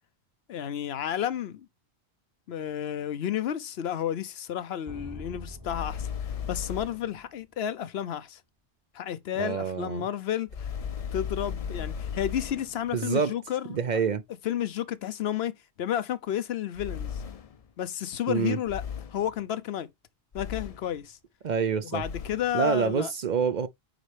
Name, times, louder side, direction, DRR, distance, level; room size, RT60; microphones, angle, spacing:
voice 1, 0.5-1.7 2.5-6.1 6.5-8.4 8.9-10.7 11.1-14.0 14.4-15.5 15.8-17.2 17.8-18.8 19.1-19.9 20.3-21.2 21.8-23.1, left 10 dB, 75° left, 0.9 m, -31 dB
sound 1, 4.9-7.5, left 1 dB, 20° right, 0.9 m, -45 dB
sound 2, 5.6-7.1 10.5-12.8 16.7-17.6 18.7-19.3 20.3-21.0 22.0-22.5, left 7 dB, 45° left, 0.6 m, -36 dB
voice 2, 9.4-10.1 12.9-13.3 13.7-14.2 18.3-18.6 21.4-22.0 22.5-23.7, right 6 dB, 55° right, 0.6 m, -27 dB
9.1 x 4.2 x 3.3 m
omnidirectional pair, 1.1 m